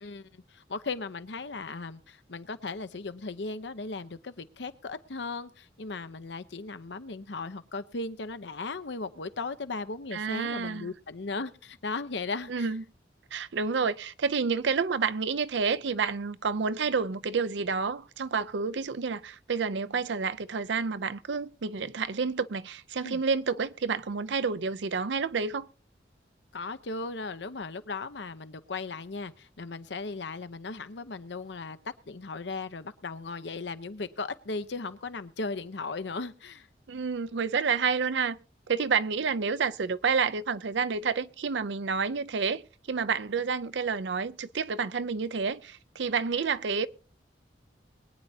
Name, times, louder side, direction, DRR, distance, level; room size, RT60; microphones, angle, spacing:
voice 1, 0.0-12.7 23.0-23.2 26.5-36.7, left 3 dB, 80° left, 0.8 m, -37 dB
voice 2, 10.1-10.9 12.5-12.8 13.3-25.7 36.9-38.4 38.7-42.6 42.9-46.9, right 5 dB, 80° right, 0.6 m, -29 dB
22.5 x 9.3 x 2.8 m
head